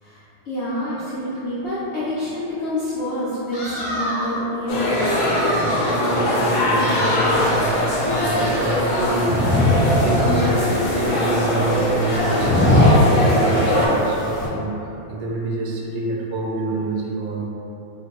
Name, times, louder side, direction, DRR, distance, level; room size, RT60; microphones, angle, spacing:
voice 1, 0.0-5.0, left 1 dB, 85° left, -13 dB, 0.6 m, -27 dB
sound 1, 3.5-4.4 4.9-6.2 6.7-7.8, equal, 25° left, 0.7 m, -28 dB
sound 2, 4.7-13.9, left 1 dB, 65° left, 0.9 m, -21 dB
voice 2, 5.6-7.9 8.2-9.5 9.9-17.5, right 2 dB, 75° right, -2 dB, 1.2 m, -26 dB
sound 3, 7.2-14.5, left 1 dB, 40° left, 1.1 m, -22 dB
4.4 x 2.1 x 2.9 m, 2.9 s
omnidirectional pair, 2.1 m